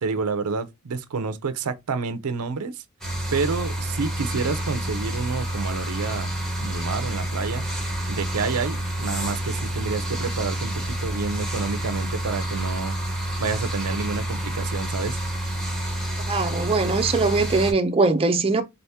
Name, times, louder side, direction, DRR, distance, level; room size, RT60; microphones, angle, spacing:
voice 1, 0.0-2.8 3.3-6.3 6.6-7.6 8.1-15.2, right 4 dB, 85° right, 0.5 m, -29 dB
sound 1, 3.0-17.7, right 1 dB, ahead, 1.1 m, -28 dB
voice 2, 16.3-18.6, right 3 dB, 25° right, 0.5 m, -21 dB
3.8 x 3.4 x 2.8 m
head